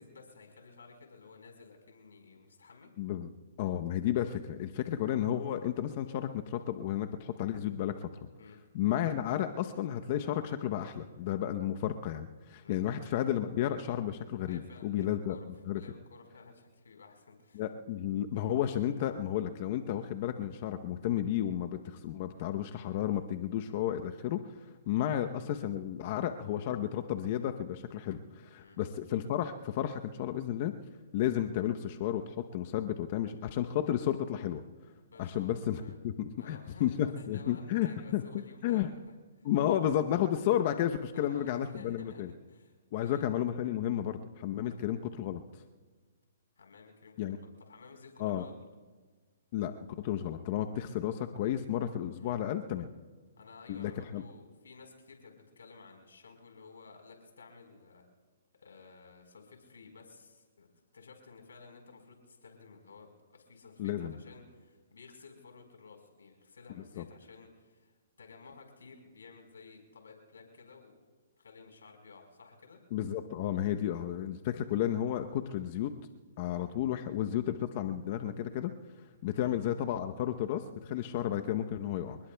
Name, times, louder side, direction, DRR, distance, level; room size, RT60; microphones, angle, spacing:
voice 1, 0.0-2.9 8.4-8.6 12.6-12.8 14.5-15.5 15.8-17.6 25.1-25.2 28.6-28.8 35.1-35.5 35.8-36.0 36.4-39.5 41.1-42.7 43.0-43.3 44.6-44.8 46.6-48.7 52.2-52.3 53.4-58.0 58.6-60.7 60.9-67.9 68.2-71.0 71.4-72.8 79.3-79.5, left 4 dB, 85° left, 3 dB, 4.3 m, -54 dB
voice 2, 3.0-3.3 3.6-8.1 8.7-15.4 15.7-15.8 17.5-24.4 24.9-30.7 31.1-34.6 35.2-38.2 38.6-38.9 39.4-42.3 42.9-45.4 47.2-47.4 48.2-48.5 49.5-49.7 50.0-52.9 53.7-54.2 63.8-64.1 67.0-67.1 72.9-75.9 76.4-78.7 79.2-82.2, left 11 dB, 45° left, 7 dB, 0.8 m, -32 dB
28.5 x 20.0 x 2.3 m, 1.4 s
hypercardioid pair, 140°, 0 cm